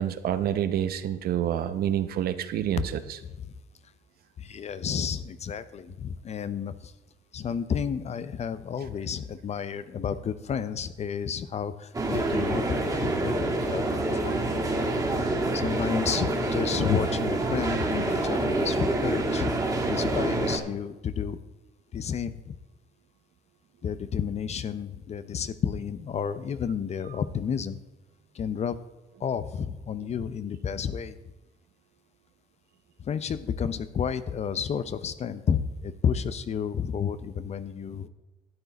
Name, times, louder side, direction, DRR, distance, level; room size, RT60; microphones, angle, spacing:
voice 1, 0.0-3.0, right 10 dB, 65° right, 11 dB, 0.9 m, -27 dB
voice 2, 4.4-6.9 7.3-14.6 15.5-19.5 19.9-21.4 21.9-22.6 23.8-27.8 28.3-28.8 29.2-31.2 33.0-38.1, left 7 dB, 40° left, 13 dB, 0.7 m, -31 dB
sound 1, 11.9-20.6, right 2 dB, 20° right, 2.3 m, -27 dB
12.5 x 9.0 x 4.1 m, 1.1 s
cardioid pair, 110°, 17 cm